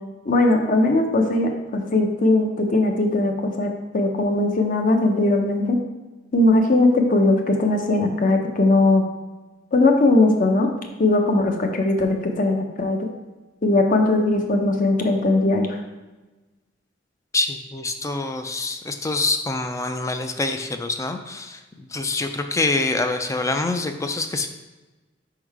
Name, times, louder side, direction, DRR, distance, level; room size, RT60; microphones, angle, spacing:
voice 1, 0.3-5.8 6.3-9.0 9.7-10.7 11.0-13.0 13.6-15.8, left 2 dB, 45° left, 3 dB, 0.7 m, -19 dB
voice 2, 17.3-24.5, left 3 dB, 15° left, 6 dB, 0.4 m, -25 dB
5.4 x 3.8 x 4.7 m, 1.1 s
head